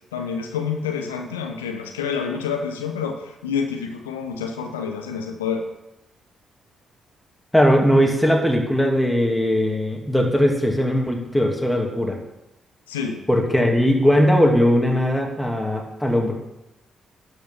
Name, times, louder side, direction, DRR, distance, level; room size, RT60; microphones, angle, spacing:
voice 1, 0.1-5.6 12.9-13.2, left 6 dB, 85° left, 4 dB, 0.8 m, -28 dB
voice 2, 7.5-12.2 13.3-16.3, equal, 5° left, 0 dB, 2.5 m, -19 dB
12.0 x 5.4 x 5.7 m, 0.90 s
hypercardioid pair, 40°, 0 cm